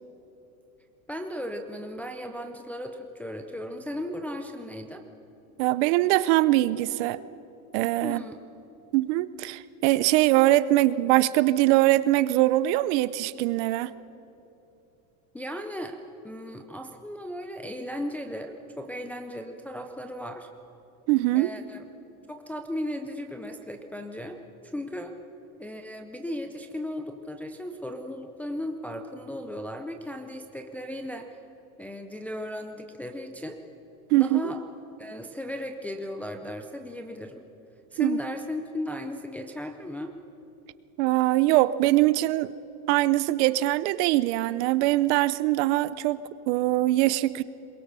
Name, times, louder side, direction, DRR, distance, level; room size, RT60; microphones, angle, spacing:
voice 1, 1.1-5.0 8.0-8.4 15.3-16.0 16.2-20.5 21.3-21.8 22.3-24.4 24.6-25.1 25.6-31.4 31.8-33.6 34.1-34.6 35.0-37.4 37.9-40.1, left 1 dB, 5° left, 4 dB, 0.4 m, -36 dB
voice 2, 5.6-7.2 7.7-8.2 8.9-13.9 21.1-21.5 34.1-34.5 38.0-38.2 41.0-42.5 42.9-47.4, right 17 dB, 50° right, 17 dB, 0.7 m, -22 dB
22.5 x 22.0 x 6.9 m, 3.0 s
supercardioid pair, 155°, 44 cm